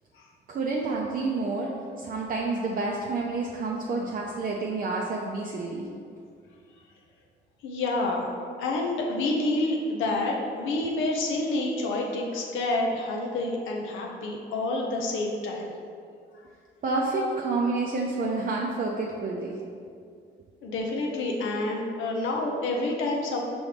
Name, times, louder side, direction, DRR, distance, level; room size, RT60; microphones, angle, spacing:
voice 1, 0.5-5.9 16.8-19.6, right 3 dB, 45° right, -2 dB, 0.5 m, -29 dB
voice 2, 7.6-8.3 8.6-15.7 20.6-23.4, left 2 dB, 85° left, -1 dB, 0.6 m, -28 dB
4.9 x 3.0 x 3.3 m, 2.3 s
cardioid pair, 90°, 20 cm